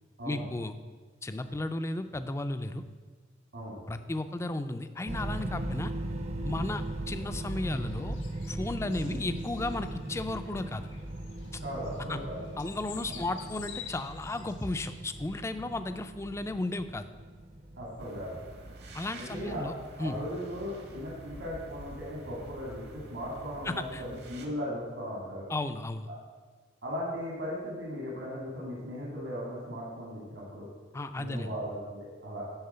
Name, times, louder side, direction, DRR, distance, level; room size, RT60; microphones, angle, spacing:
voice 1, 0.2-0.7 1.2-2.8 3.9-5.9 6.4-8.2 8.5-10.9 12.1-12.2 12.6-17.1 18.9-19.7 20.0-20.2 23.7-24.0 25.5-26.1 30.9-31.5, left 2 dB, 15° left, 10 dB, 0.3 m, -34 dB
sound 1, 5.1-19.1, right 1 dB, 35° right, 0.6 m, -39 dB
sound 2, 6.4-15.5, left 8 dB, 75° left, 0.8 m, -51 dB
voice 2, 11.6-12.4 13.1-13.2 17.8-18.4 19.1-19.7 20.0-25.5 26.8-30.7 31.1-32.4, equal, 80° right, -5 dB, 2.1 m, -37 dB
sound 3, 18.0-24.5, right 1 dB, 60° right, 1.0 m, -48 dB
10.5 x 3.7 x 6.7 m, 1.5 s
head